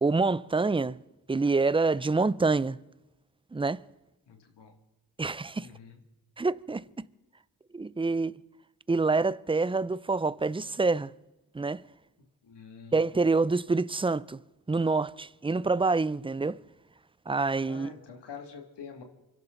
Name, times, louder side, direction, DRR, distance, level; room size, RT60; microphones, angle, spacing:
voice 1, 0.0-1.0 1.3-2.8 3.5-3.8 5.2-5.7 6.4-6.8 7.7-8.3 8.9-11.1 11.5-11.8 12.9-14.4 14.7-16.6 17.3-17.9, right 3 dB, 15° right, 0.5 m, -26 dB
voice 2, 4.3-4.7 5.6-6.0 12.4-13.2 17.7-19.0, left 6 dB, 80° left, 2.6 m, -46 dB
25.5 x 12.0 x 4.0 m
cardioid pair, 60°, 41 cm